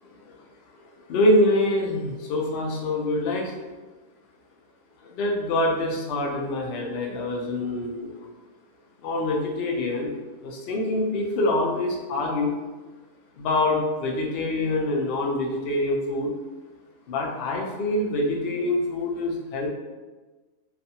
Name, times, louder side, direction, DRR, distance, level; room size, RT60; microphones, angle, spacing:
voice 1, 1.1-3.5 5.2-8.1 9.0-10.1 10.4-12.5 13.4-16.3 17.1-19.7, left 1 dB, 70° left, 0 dB, 0.5 m, -25 dB
2.4 x 2.4 x 2.7 m, 1.3 s
omnidirectional pair, 1.5 m